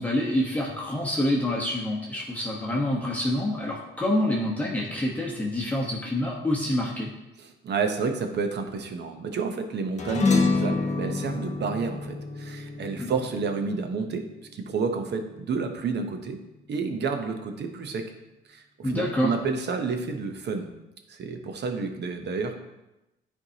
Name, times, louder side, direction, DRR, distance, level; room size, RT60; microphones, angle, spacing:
voice 1, 0.0-7.1 13.0-13.1 18.8-19.3, left 1 dB, 5° left, -4 dB, 1.1 m, -27 dB
voice 2, 7.4-14.3 14.5-16.4 16.7-18.1 18.5-20.7 21.1-22.6, right 5 dB, 60° right, 6 dB, 0.9 m, -30 dB
sound 1, 10.0-14.7, left 3 dB, 35° left, 1.1 m, -27 dB
9.6 x 4.6 x 2.9 m, 0.96 s
cardioid pair, 90°, 20 cm